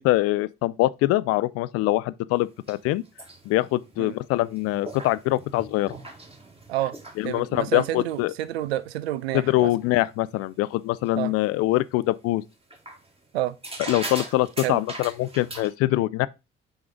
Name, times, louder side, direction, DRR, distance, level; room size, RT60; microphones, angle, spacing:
voice 1, 0.0-3.0 3.5-5.9 7.2-8.3 9.3-12.4 13.9-16.3, left 17 dB, 50° left, 0.4 m, -24 dB
sound 1, 2.3-10.5 10.7-11.4 11.7-11.8 12.7-13.2 13.6-15.7, right 2 dB, 20° right, 1.8 m, -41 dB
voice 2, 7.2-9.7 11.2-11.3 13.3-13.6 14.6-14.8, right 14 dB, 75° right, 0.5 m, -29 dB
6.2 x 4.9 x 3.7 m
figure-of-eight pair, 45°, 31 cm